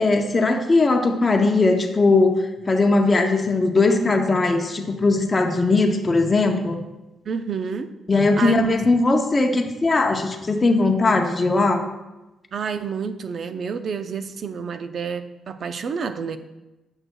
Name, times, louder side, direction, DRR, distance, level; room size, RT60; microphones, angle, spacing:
voice 1, 0.0-2.3 2.7-6.8 8.1-11.8, left 3 dB, 25° left, 3 dB, 0.7 m, -19 dB
voice 2, 7.2-7.9 8.4-8.6 12.5-16.4, right 6 dB, 55° right, 10 dB, 0.4 m, -29 dB
7.8 x 6.1 x 2.2 m, 1.0 s
cardioid pair, 100°, 0 cm